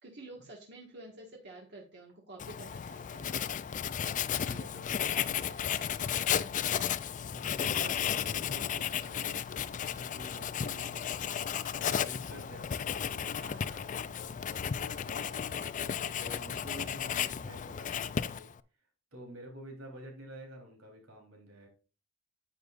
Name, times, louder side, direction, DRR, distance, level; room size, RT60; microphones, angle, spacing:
voice 1, 0.0-3.4 7.8-8.0 13.4-13.8, right 2 dB, 55° right, -1 dB, 1.7 m, -49 dB
Writing, 2.4-18.6, left 8 dB, 40° left, 0.4 m, -34 dB
voice 2, 3.9-13.3 13.7-21.7, equal, 85° right, 1 dB, 3.7 m, -50 dB
10.0 x 7.9 x 2.5 m, 0.36 s
head